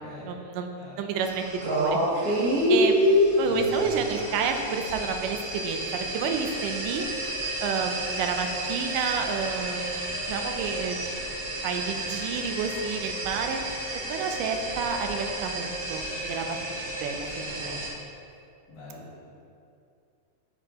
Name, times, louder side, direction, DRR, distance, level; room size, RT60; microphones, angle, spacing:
voice 1, 0.2-7.1 7.6-11.3 11.6-13.6 14.1-16.6 17.0-17.8, right 5 dB, 85° right, 5 dB, 2.2 m, -30 dB
sound 1, 1.2-17.9, equal, 60° right, 0.9 m, -29 dB
voice 2, 17.5-17.8 18.7-19.3, left 2 dB, 70° left, -11 dB, 3.1 m, -45 dB
8.8 x 7.3 x 2.9 m, 2.5 s
omnidirectional pair, 3.7 m